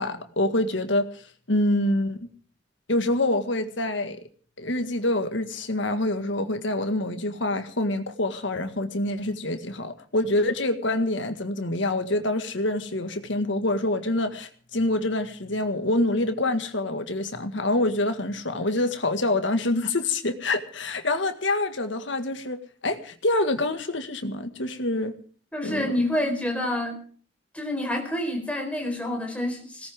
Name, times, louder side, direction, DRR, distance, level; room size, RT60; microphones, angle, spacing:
voice 1, 0.0-2.3 2.9-4.2 4.6-25.1 25.6-26.0, left 1 dB, 70° left, 1.9 m, -26 dB
voice 2, 25.5-27.0 27.5-29.9, left 1 dB, 5° left, 4.4 m, -28 dB
20.5 x 18.0 x 3.7 m
head